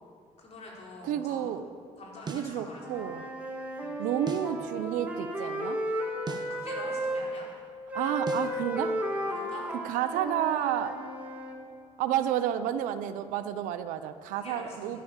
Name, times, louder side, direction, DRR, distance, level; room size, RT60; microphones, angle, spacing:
voice 1, 0.4-1.5 2.0-3.1 3.7-4.0 6.3-7.5 9.2-9.7 14.3-15.0, left 2 dB, 55° left, -3 dB, 4.2 m, -45 dB
voice 2, 1.1-1.7 2.3-3.3 4.0-5.8 7.9-8.9 9.8-10.9 12.0-15.0, right 10 dB, 90° right, 11 dB, 0.7 m, -30 dB
sound 1, 2.3-2.6 4.3-4.6 6.3-6.6 8.3-8.6, right 4 dB, 35° right, 1.1 m, -38 dB
Wind instrument woodwind instrument, 2.8-7.2 7.9-11.6, right 1 dB, 10° right, 2.6 m, -34 dB
11.5 x 10.5 x 7.2 m, 2.2 s
supercardioid pair, 75°, 13 cm